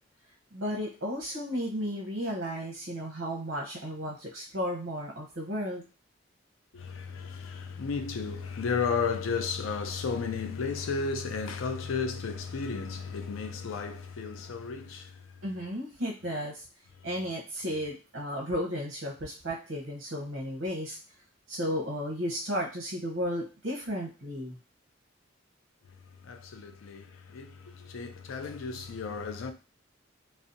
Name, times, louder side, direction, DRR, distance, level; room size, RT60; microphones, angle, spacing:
voice 1, 0.5-5.8 15.4-16.6 17.0-21.0 21.5-24.6, equal, 60° right, 0.7 m, -34 dB
voice 2, 6.7-15.2 26.2-29.5, left 5 dB, 85° left, 0.4 m, -33 dB
2.6 x 2.1 x 2.5 m
head